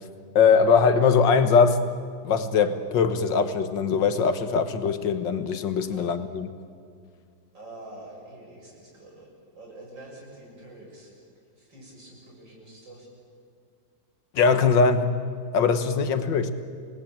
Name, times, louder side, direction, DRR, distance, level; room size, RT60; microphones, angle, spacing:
voice 1, 0.4-1.8 2.2-6.5 14.4-15.1 15.5-16.5, left 5 dB, 80° left, 10 dB, 2.0 m, -21 dB
voice 2, 7.5-9.3 9.6-11.1 11.5-13.1, right 1 dB, 80° right, -2 dB, 7.7 m, -46 dB
28.0 x 19.0 x 8.8 m, 2.2 s
omnidirectional pair, 2.0 m